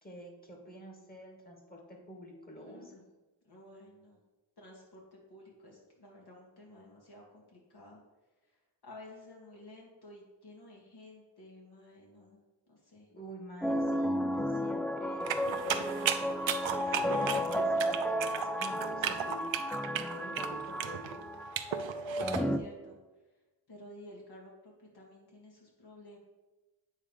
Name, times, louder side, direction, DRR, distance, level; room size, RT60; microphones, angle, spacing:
voice 1, 0.0-3.0 13.1-15.4 16.9-19.5 19.9-21.2, equal, 20° left, 0 dB, 2.3 m, -47 dB
voice 2, 2.6-3.1 3.4-4.2 4.6-8.0 8.4-12.4 12.7-13.1 19.9-20.4 22.0-23.0 23.7-26.2, left 1 dB, 60° left, -3 dB, 2.9 m, -53 dB
sound 1, 13.6-22.6, equal, 5° left, 0.4 m, -33 dB
sound 2, 15.3-22.4, right 9 dB, 80° right, 0.7 m, -35 dB
8.7 x 3.7 x 6.6 m, 1.2 s
cardioid pair, 75°, 45 cm